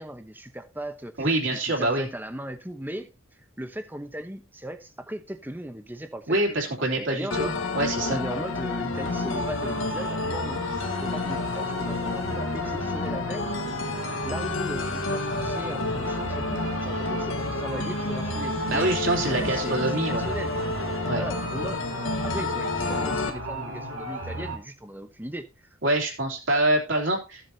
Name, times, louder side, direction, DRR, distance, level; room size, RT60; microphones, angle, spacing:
voice 1, 0.0-6.7 7.0-7.5 8.1-10.6 11.0-13.6 14.2-20.7 21.1-21.8 22.2-25.7, right 1 dB, 10° right, 0.9 m, -38 dB
voice 2, 1.2-2.0 6.3-8.2 18.7-20.3 21.1-21.2 25.8-27.4, right 1 dB, 65° right, 2.9 m, -25 dB
sound 1, 7.3-23.3, left 3 dB, 70° left, 1.3 m, -30 dB
sound 2, 8.9-24.6, right 2 dB, 90° right, 2.2 m, -36 dB
15.0 x 7.6 x 2.7 m
head